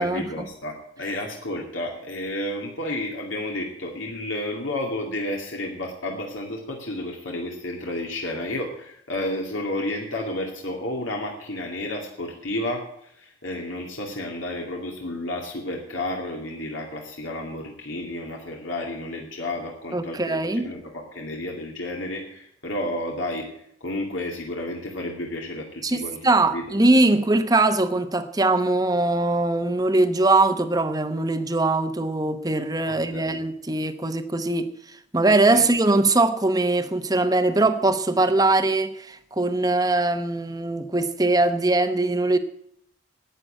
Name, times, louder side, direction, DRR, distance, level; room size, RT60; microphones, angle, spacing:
voice 1, 0.0-23.5 23.8-26.7 32.8-33.4 35.5-35.7, left 1 dB, 85° left, 2.5 m, -31 dB
voice 2, 19.9-20.7 25.8-34.7 35.1-42.4, right 2 dB, 20° right, 0.9 m, -21 dB
11.0 x 8.9 x 9.0 m
head